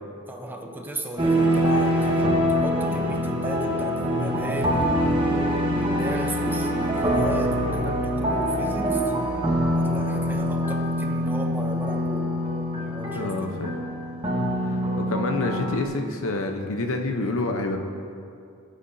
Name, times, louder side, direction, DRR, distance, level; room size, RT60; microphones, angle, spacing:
voice 1, 0.3-9.1 9.8-12.4 12.7-13.6, right 1 dB, 10° right, 3 dB, 0.7 m, -36 dB
sound 1, 1.2-15.8, equal, 25° right, 1.4 m, -24 dB
voice 2, 13.1-13.7 14.7-14.8 15.1-17.8, left 2 dB, 65° left, 4 dB, 0.9 m, -27 dB
17.5 x 8.4 x 2.7 m, 2.4 s
head